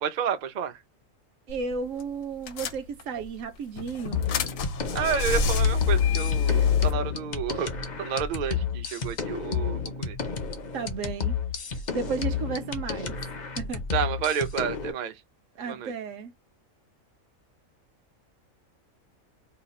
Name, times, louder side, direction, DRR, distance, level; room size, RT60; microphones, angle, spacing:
voice 1, 0.0-0.8 4.9-7.7 8.0-10.2 13.9-15.2 15.7-15.9, right 8 dB, 55° right, 0.5 m, -30 dB
sound 1, 1.5-1.7 2.0-2.1 2.5-3.3 3.8-6.9, left 7 dB, 75° left, 1.0 m, -25 dB
voice 2, 1.5-4.3 6.5-6.7 10.7-11.3 11.9-13.2 13.6-13.8 15.6-16.3, right 5 dB, 75° right, 1.0 m, -33 dB
sound 2, 4.1-14.9, left 6 dB, 50° left, 0.6 m, -31 dB
2.9 x 2.3 x 4.0 m
omnidirectional pair, 1.4 m